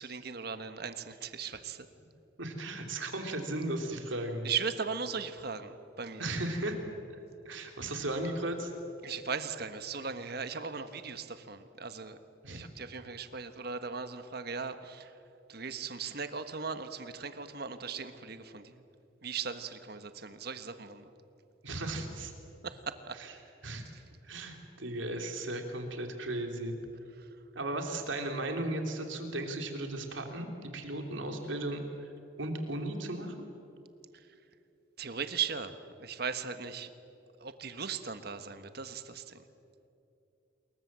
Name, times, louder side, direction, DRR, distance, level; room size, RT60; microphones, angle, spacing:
voice 1, 0.0-1.8 4.4-6.3 9.0-12.2 12.5-15.1 15.5-18.7 19.2-21.0 22.6-23.1 35.0-35.7 36.0-36.9 37.4-39.4, right 6 dB, 55° right, 10 dB, 1.4 m, -38 dB
voice 2, 2.4-4.5 6.2-6.8 7.5-8.7 12.4-12.7 21.6-22.3 23.1-23.4 23.6-23.9 24.2-26.8 27.6-32.1 32.4-33.3, right 1 dB, 80° right, 4 dB, 3.3 m, -36 dB
27.5 x 22.5 x 7.6 m, 2.8 s
head